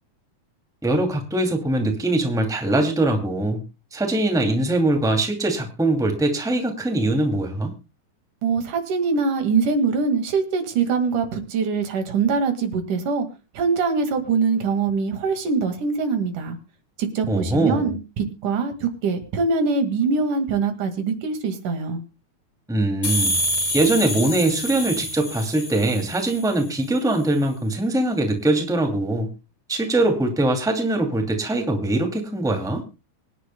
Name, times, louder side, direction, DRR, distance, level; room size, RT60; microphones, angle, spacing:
voice 1, 0.8-3.6 3.9-7.7 17.3-17.9 22.7-23.3 23.7-29.3 29.7-32.8, right 2 dB, ahead, 4 dB, 1.9 m, -22 dB
voice 2, 8.4-13.3 13.6-16.6 17.0-22.0, right 4 dB, 90° right, 7 dB, 3.5 m, -23 dB
sound 1, 23.0-26.6, equal, 40° left, 3.6 m, -27 dB
24.5 x 10.0 x 2.2 m, 0.28 s
omnidirectional pair, 3.5 m